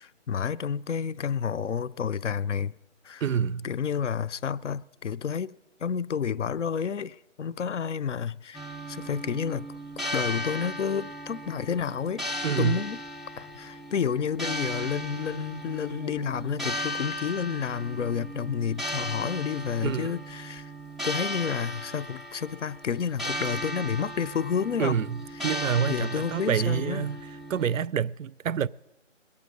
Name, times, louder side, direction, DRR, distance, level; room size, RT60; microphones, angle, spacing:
voice 1, 0.0-2.7 3.0-3.2 3.6-5.5 5.8-9.7 10.0-12.2 12.6-13.0 13.4-20.7 21.0-25.0 25.9-27.1, left 7 dB, 65° left, 0.5 m, -30 dB
voice 2, 3.2-3.7 12.4-12.8 19.8-20.1 24.8-27.2 27.5-28.7, right 8 dB, 85° right, 0.5 m, -27 dB
sound 1, 8.5-27.9, equal, ahead, 0.5 m, -36 dB
21.5 x 8.5 x 6.4 m
hypercardioid pair, 180°, 38 cm